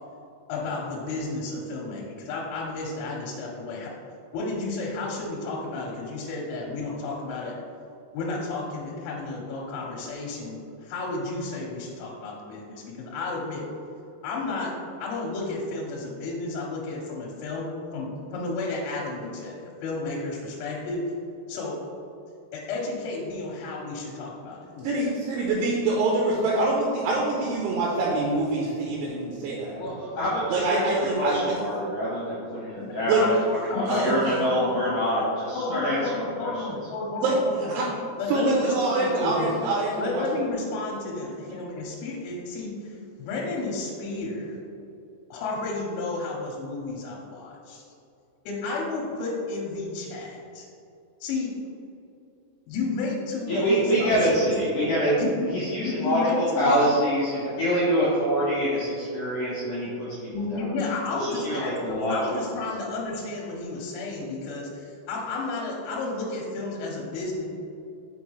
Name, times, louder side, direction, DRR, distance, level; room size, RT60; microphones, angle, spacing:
voice 1, 0.5-3.9 4.3-7.6 8.1-13.7 14.2-14.7 15.0-21.0 21.5-21.8 22.5-24.9 29.6-30.0 32.7-32.9 33.7-35.0 35.5-37.7 38.2-39.5 40.0-44.6 45.3-47.8 48.5-50.7 51.2-51.5 52.7-54.5 55.2-55.5 55.8-56.9 60.3-67.5, left 3 dB, 85° left, -2 dB, 3.1 m, -32 dB
voice 2, 24.8-29.8 30.5-31.6 33.1-33.2 33.9-34.3 37.2-37.4 37.7-37.9 38.3-39.9 40.2-40.3, right 3 dB, 80° right, -3 dB, 3.0 m, -25 dB
voice 3, 29.8-36.6 53.5-60.7 61.2-62.4, equal, 70° left, -8 dB, 2.3 m, -26 dB
6.2 x 5.6 x 3.2 m, 2.7 s
omnidirectional pair, 5.7 m